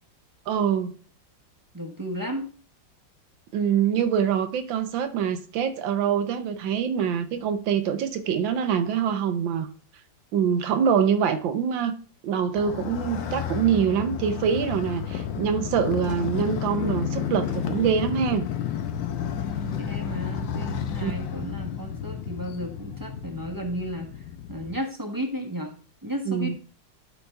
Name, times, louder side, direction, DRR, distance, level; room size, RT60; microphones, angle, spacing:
voice 1, 0.5-0.9 3.5-9.7 10.3-12.0 12.2-18.5 21.0-21.1 26.3-26.6, right 7 dB, 85° right, 1.6 m, -24 dB
voice 2, 1.7-2.5 19.3-24.1 24.5-25.7 26.0-26.6, equal, 15° right, 0.7 m, -33 dB
Motorcycle, 12.6-24.8, left 8 dB, 85° left, 1.6 m, -31 dB
11.5 x 4.1 x 3.4 m
omnidirectional pair, 2.0 m